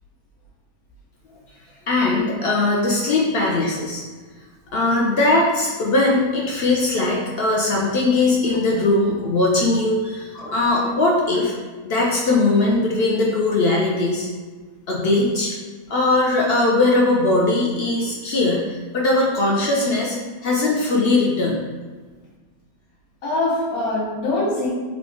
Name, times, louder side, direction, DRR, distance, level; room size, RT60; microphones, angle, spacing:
voice 1, 1.9-4.0 4.7-11.5 11.8-14.3 14.9-15.5 15.9-21.6, left 2 dB, 60° left, -3 dB, 0.6 m, -20 dB
voice 2, 23.2-24.7, left 2 dB, 80° left, -5 dB, 1.4 m, -24 dB
3.5 x 2.3 x 3.8 m, 1.4 s
omnidirectional pair, 1.5 m